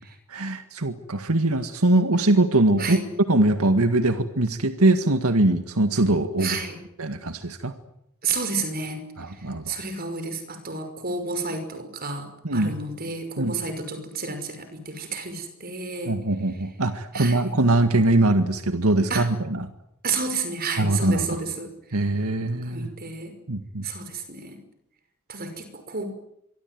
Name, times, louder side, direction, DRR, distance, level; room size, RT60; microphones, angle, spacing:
voice 1, 0.3-3.0 3.3-6.6 7.0-7.7 9.2-9.8 12.4-12.7 13.4-13.6 16.1-19.7 20.8-21.3 21.9-22.9 23.5-23.9, right 2 dB, 90° right, 8 dB, 1.9 m, -22 dB
voice 2, 6.4-6.8 8.2-9.0 9.4-16.2 17.1-17.4 19.1-19.3 20.0-21.7 22.6-23.3 23.8-24.6 25.3-26.1, right 4 dB, 45° right, 8 dB, 5.8 m, -31 dB
26.0 x 23.5 x 9.5 m, 0.77 s
head